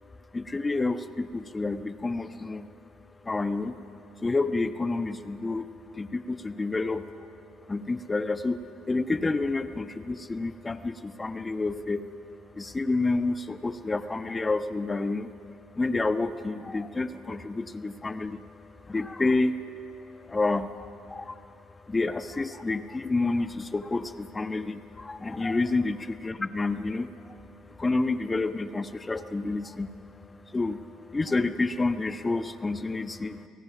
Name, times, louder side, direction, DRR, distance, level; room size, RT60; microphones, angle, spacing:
voice 1, 0.3-2.7 3.2-3.8 4.2-5.7 5.9-7.0 7.7-8.6 8.9-12.0 12.5-15.3 15.7-18.4 18.9-19.6 20.2-21.4 21.8-27.4 27.7-29.9 30.5-30.8 31.1-33.4, left 3 dB, 20° left, 10 dB, 1.2 m, -29 dB
29.0 x 18.0 x 6.0 m, 2.6 s
hypercardioid pair, 65°, 0 cm